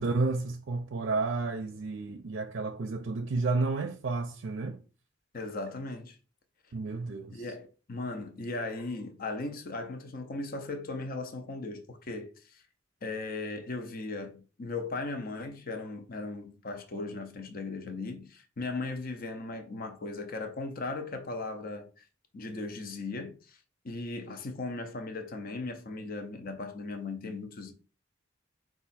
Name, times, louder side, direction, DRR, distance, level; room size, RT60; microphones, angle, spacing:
voice 1, 0.0-4.8 6.7-7.4, right 3 dB, 65° right, 0.5 m, -31 dB
voice 2, 5.3-6.2 7.3-12.6 13.0-22.0 22.3-23.6 23.8-27.7, left 3 dB, 50° left, 0.7 m, -37 dB
4.7 x 2.5 x 4.1 m
head